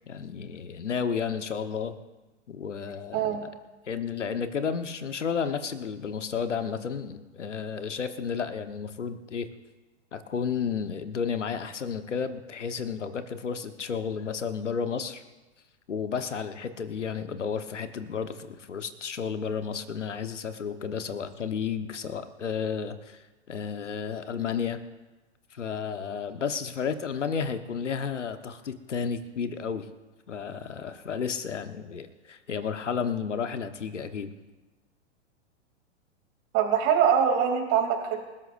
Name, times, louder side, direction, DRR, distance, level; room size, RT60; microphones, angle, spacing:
voice 1, 0.1-1.9 2.5-3.5 3.9-9.5 10.1-15.2 15.9-24.8 25.5-29.9 30.3-34.3, left 6 dB, 85° left, 9 dB, 1.3 m, -32 dB
voice 2, 36.5-38.2, right 8 dB, 40° right, 2 dB, 3.1 m, -23 dB
27.0 x 13.0 x 2.6 m, 1.2 s
hypercardioid pair, 105°, 35 cm